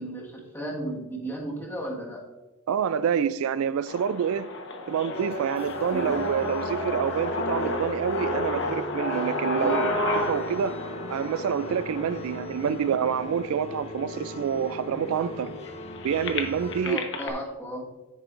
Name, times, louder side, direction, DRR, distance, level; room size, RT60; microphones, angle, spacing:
voice 1, 0.0-2.2 5.9-6.1 9.5-9.8 12.7-12.8 16.8-17.9, right 1 dB, 10° left, 1.6 m, -34 dB
voice 2, 2.7-4.5 4.9-10.8 11.1-15.5 16.0-17.0, right 7 dB, 65° right, 0.3 m, -27 dB
sound 1, 3.9-13.8 14.5-14.6 14.8-17.3, left 2 dB, 55° left, 1.2 m, -31 dB
sound 2, 5.1-16.8, equal, 30° left, 0.6 m, -38 dB
10.5 x 9.1 x 2.5 m
head